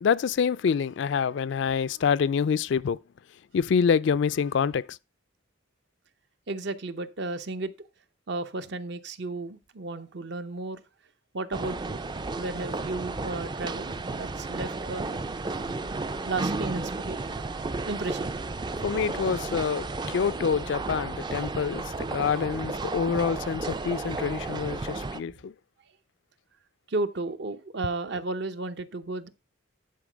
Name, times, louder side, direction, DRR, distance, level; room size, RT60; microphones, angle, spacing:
voice 1, 0.0-3.0 3.5-5.0 18.8-25.5, left 6 dB, 65° left, 0.3 m, -26 dB
voice 2, 6.5-7.7 8.3-10.8 11.3-12.0 12.4-15.2 16.2-17.2 17.7-18.3 26.9-29.3, right 2 dB, 55° right, 0.7 m, -33 dB
sound 1, 11.5-25.2, right 3 dB, 20° right, 0.4 m, -33 dB
10.5 x 4.5 x 5.0 m
head